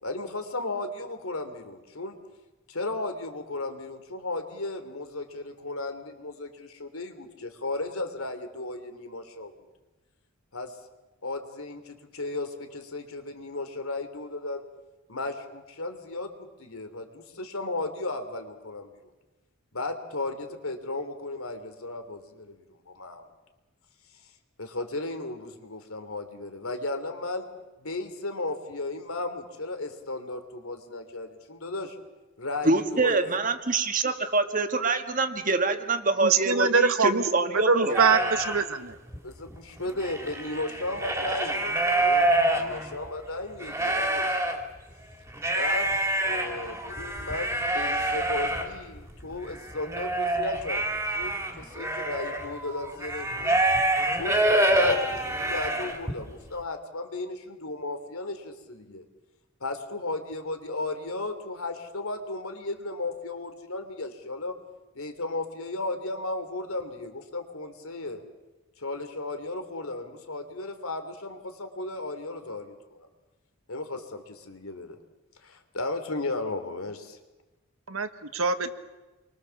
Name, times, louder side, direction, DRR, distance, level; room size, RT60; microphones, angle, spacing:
voice 1, 0.0-2.2 2.7-9.5 10.5-10.7 11.2-14.6 15.1-18.9 19.7-23.2 24.6-27.5 27.8-32.0 32.4-33.2 37.8-38.3 39.2-44.4 45.5-45.9 46.2-53.7 54.2-59.0 59.6-64.6 64.9-68.2 68.8-73.1 73.7-75.0 75.4-77.2, left 2 dB, 80° left, 7 dB, 3.2 m, -35 dB
voice 2, 32.6-38.0, right 3 dB, 40° right, 7 dB, 1.7 m, -25 dB
voice 3, 36.2-37.2 37.5-38.9 77.9-78.7, right 5 dB, 80° right, 9 dB, 1.5 m, -23 dB
sound 1, 37.9-38.6 39.1-39.2 39.5-43.1 43.5-44.6 45.3-56.2, right 1 dB, 10° right, 2.8 m, -26 dB
28.5 x 23.5 x 7.2 m, 1.1 s
head